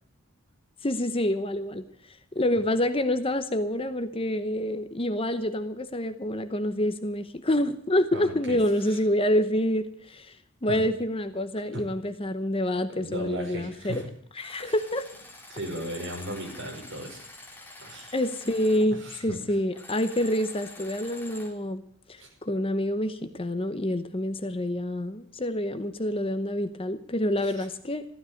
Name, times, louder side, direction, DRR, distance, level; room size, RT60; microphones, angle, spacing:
voice 1, 0.8-10.4 10.6-14.0 14.4-15.1 18.1-28.1, left 1 dB, 25° left, 10 dB, 0.8 m, -27 dB
voice 2, 8.1-8.6 8.9-9.0 10.7-10.8 11.7-11.8 13.0-14.1 14.6-14.7 15.5-17.2 17.8-18.2 18.9-19.4 22.2-22.3 27.4-27.7, right 1 dB, 55° right, 1 dB, 5.3 m, -37 dB
sound 1, 13.8-14.1 14.4-18.9 19.7-21.5, left 2 dB, 10° left, 2.8 m, -46 dB
15.0 x 13.0 x 6.5 m, 0.67 s
head